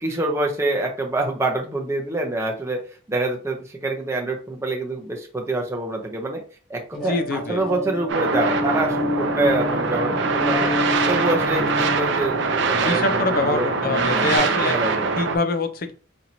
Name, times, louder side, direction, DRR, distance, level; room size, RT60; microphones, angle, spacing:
voice 1, 0.0-6.4 6.7-10.7 11.1-13.7 14.1-15.1, right 2 dB, 15° right, 1 dB, 0.6 m, -26 dB
voice 2, 6.9-7.6 12.8-14.8 15.2-15.9, left 3 dB, 45° left, 8 dB, 0.5 m, -24 dB
sound 1, 6.9-14.4, left 2 dB, 5° left, 0.9 m, -29 dB
sound 2, 8.1-15.4, right 4 dB, 55° right, 0.5 m, -23 dB
4.2 x 2.8 x 2.7 m, 0.39 s
head